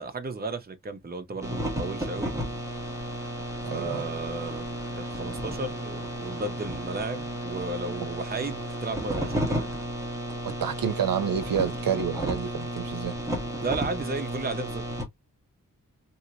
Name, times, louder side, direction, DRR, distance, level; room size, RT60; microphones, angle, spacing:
voice 1, 0.0-2.4 3.7-4.7 5.0-9.7 13.6-14.8, right 3 dB, 30° right, 0.7 m, -34 dB
sound 1, 1.4-15.0, equal, 10° right, 1.1 m, -33 dB
sound 2, 2.6-9.9, left 1 dB, 5° left, 1.6 m, -50 dB
voice 2, 3.6-4.1 10.5-13.2, right 8 dB, 85° right, 0.7 m, -29 dB
2.9 x 2.8 x 2.7 m
wide cardioid pair, 100°, 33 cm